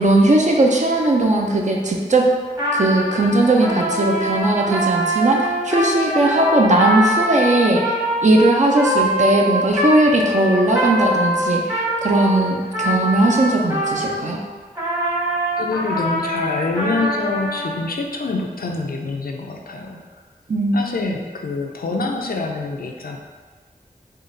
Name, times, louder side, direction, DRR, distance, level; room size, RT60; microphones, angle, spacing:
voice 1, 0.0-2.3 2.7-8.0 8.2-14.4 20.5-20.8, right 2 dB, 50° right, 0 dB, 0.6 m, -18 dB
Trumpet, 2.5-14.3 14.7-17.7, equal, 25° right, 1.1 m, -23 dB
voice 2, 15.6-20.0 20.7-23.2, left 3 dB, 65° left, 2 dB, 0.5 m, -26 dB
3.8 x 2.4 x 3.8 m, 1.4 s
wide cardioid pair, 65°, 16 cm